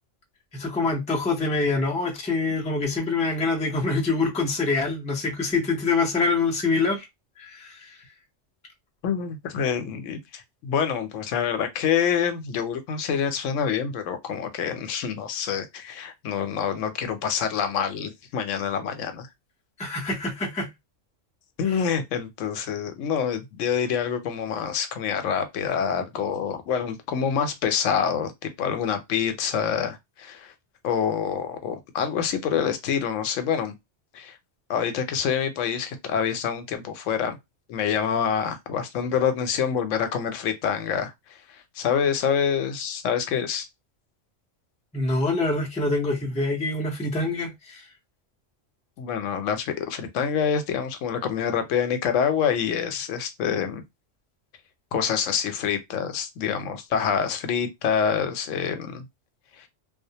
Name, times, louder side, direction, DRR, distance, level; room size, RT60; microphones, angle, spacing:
voice 1, 0.5-7.0 7.4-7.9 19.8-20.7 21.7-21.8 44.9-47.8, left 3 dB, 10° left, 0.3 m, -25 dB
voice 2, 9.0-19.3 21.6-28.3 28.6-30.5 30.8-33.7 34.1-34.4 34.7-37.4 37.7-43.7 49.0-53.8 54.9-59.1 59.6-59.7, left 7 dB, 85° left, 0.9 m, -26 dB
2.4 x 2.1 x 2.7 m
omnidirectional pair, 1.3 m